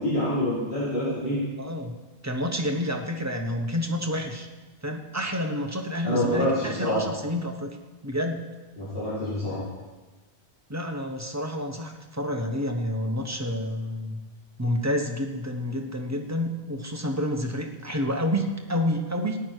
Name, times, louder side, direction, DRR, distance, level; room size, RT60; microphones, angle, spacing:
voice 1, 0.0-1.4 6.0-7.0 8.8-9.6, equal, 60° left, -13 dB, 5.0 m, -26 dB
voice 2, 1.6-1.9 2.2-4.5 4.8-7.8 8.0-8.4 10.7-14.2 14.6-19.4, left 1 dB, 15° right, 2 dB, 1.1 m, -29 dB
15.0 x 9.7 x 4.6 m, 1.2 s
omnidirectional pair, 1.1 m